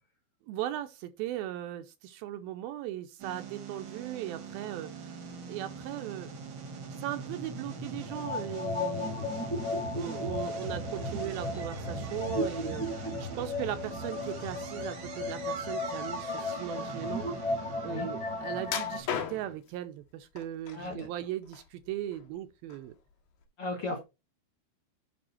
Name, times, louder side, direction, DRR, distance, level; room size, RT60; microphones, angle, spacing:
voice 1, 0.5-5.2 5.5-6.3 7.0-9.2 9.9-17.3 17.8-22.9, right 13 dB, 80° right, 2.3 m, -38 dB
sound 1, 3.2-19.5, right 2 dB, 55° right, 1.4 m, -41 dB
sound 2, 8.1-19.0, left 2 dB, 5° left, 1.2 m, -35 dB
sound 3, 18.7-19.7 20.4-21.0 21.4-22.4 22.7-22.9 23.4-23.5, left 8 dB, 85° left, 3.6 m, -36 dB
voice 2, 20.7-21.1 23.6-24.0, left 2 dB, 55° left, 1.6 m, -36 dB
8.7 x 5.6 x 4.3 m
omnidirectional pair, 4.6 m